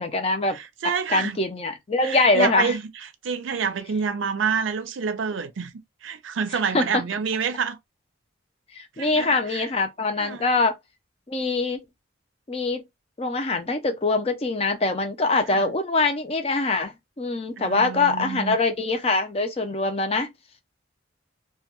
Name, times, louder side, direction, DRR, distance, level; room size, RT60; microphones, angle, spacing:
voice 1, 0.0-0.6 1.1-2.7 6.7-7.0 8.7-10.8 11.3-11.8 12.5-12.8 13.2-20.3, left 3 dB, 30° left, 0.4 m, -23 dB
voice 2, 0.5-1.4 2.0-2.8 3.2-5.7 6.0-7.8 9.0-9.7 10.2-10.5 15.5-15.7 17.6-18.6, right 6 dB, 90° right, 0.5 m, -28 dB
2.2 x 2.2 x 2.8 m
head